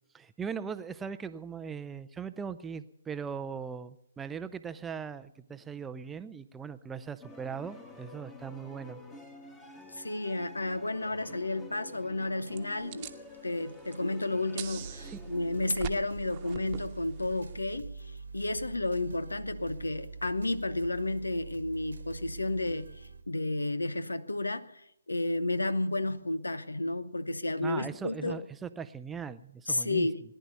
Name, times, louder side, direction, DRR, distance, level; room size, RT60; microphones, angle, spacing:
voice 1, 0.1-9.0 15.0-15.2 27.6-30.1, right 6 dB, 10° right, 0.5 m, -39 dB
sound 1, 7.2-15.7, left 2 dB, 10° left, 1.5 m, -49 dB
voice 2, 9.9-13.1 13.4-24.7 25.1-28.4 29.7-30.2, left 2 dB, 85° left, 0.9 m, -32 dB
sound 2, 12.5-17.6, right 10 dB, 30° right, 1.1 m, -45 dB
sound 3, 14.6-23.2, right 4 dB, 75° right, 1.3 m, -44 dB
19.0 x 10.0 x 6.9 m
figure-of-eight pair, 140°, 0 cm